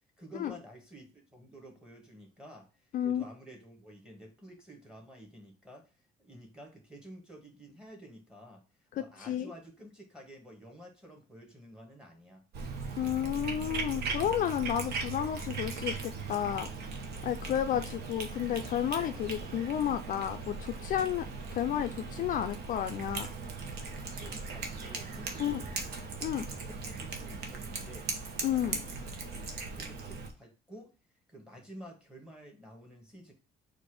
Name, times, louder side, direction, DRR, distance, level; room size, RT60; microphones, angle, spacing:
voice 1, 0.2-5.9 6.2-12.5 24.1-25.8 26.2-28.1 28.6-29.1 29.7-30.9 31.3-33.3, equal, 5° right, 2 dB, 1.6 m, -51 dB
voice 2, 2.9-3.2 8.9-9.5 13.0-16.7 17.2-23.3 25.4-25.6 26.2-26.4 28.4-28.8, left 10 dB, 55° left, 8 dB, 0.4 m, -32 dB
Cat, 12.5-30.3, right 4 dB, 70° right, 1.0 m, -39 dB
4.2 x 2.6 x 4.7 m, 0.31 s
cardioid pair, 110°, 17 cm